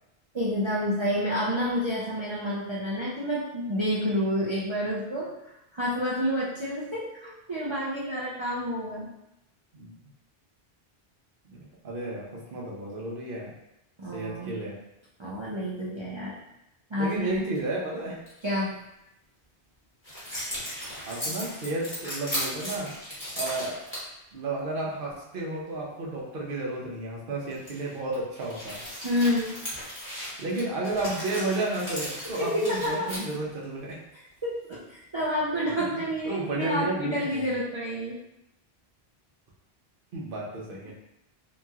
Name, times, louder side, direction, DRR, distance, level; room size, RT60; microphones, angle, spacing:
voice 1, 0.3-5.3 5.7-9.1 14.0-14.6 15.2-16.4 16.9-17.5 18.4-18.8 29.0-29.5 32.4-33.1 34.4-38.2, equal, 45° right, -8 dB, 0.4 m, -29 dB
voice 2, 11.5-13.5 14.1-14.7 17.0-18.2 21.1-22.9 23.4-23.7 24.3-28.8 30.4-34.0 35.7-37.5 40.1-40.9, right 2 dB, 60° right, -3 dB, 0.9 m, -32 dB
sound 1, 17.2-17.6 18.3-18.4 20.0-24.1 24.8-24.9 27.4-33.6, equal, 10° left, 1.1 m, -37 dB
2.9 x 2.8 x 2.3 m, 0.86 s
omnidirectional pair, 1.1 m